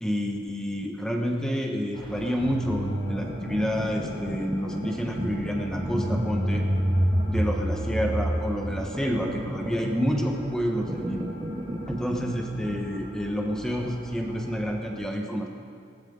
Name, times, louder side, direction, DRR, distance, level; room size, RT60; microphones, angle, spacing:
voice 1, 0.0-6.6 7.3-11.2 11.9-15.5, equal, 5° left, 1 dB, 1.3 m, -29 dB
sound 1, 1.9-14.9, equal, 20° left, 3.8 m, -44 dB
sound 2, 2.4-12.9, equal, 25° right, 1.0 m, -30 dB
20.5 x 17.5 x 4.0 m, 2.3 s
head